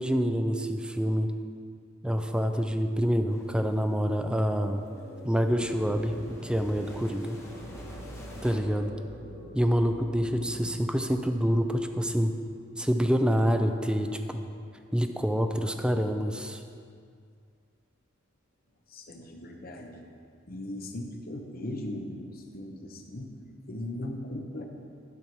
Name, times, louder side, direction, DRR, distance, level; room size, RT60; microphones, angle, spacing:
voice 1, 0.0-1.3 2.0-4.8 5.2-7.4 8.4-8.9 9.5-12.3 12.8-14.5 14.9-16.6, equal, 5° right, 6 dB, 0.4 m, -27 dB
sound 1, 3.3-8.6, left 1 dB, 15° left, 1.1 m, -48 dB
sound 2, 4.1-15.2, equal, 60° right, 2.5 m, -48 dB
sound 3, 7.4-12.2, right 1 dB, 70° left, 1.1 m, -48 dB
voice 2, 18.9-20.1 20.5-23.3 23.7-24.7, left 1 dB, 45° left, 3 dB, 1.0 m, -38 dB
12.0 x 5.7 x 4.6 m, 2.2 s
head